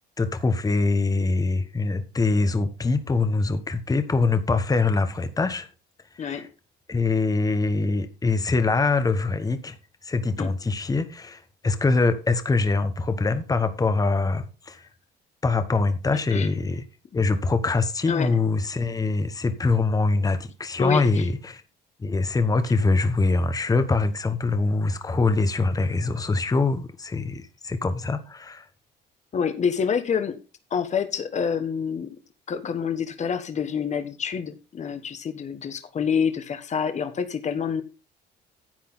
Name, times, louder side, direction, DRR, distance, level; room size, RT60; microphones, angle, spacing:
voice 1, 0.2-5.7 6.2-6.5 6.9-9.8 10.0-14.8 15.4-16.8 17.1-21.6 22.0-28.6, left 3 dB, 20° left, 1.2 m, -24 dB
voice 2, 20.8-21.2 29.3-30.4 30.7-32.2 32.5-37.8, left 6 dB, 40° left, 1.4 m, -27 dB
10.5 x 8.3 x 4.0 m
cardioid pair, 100°, 18 cm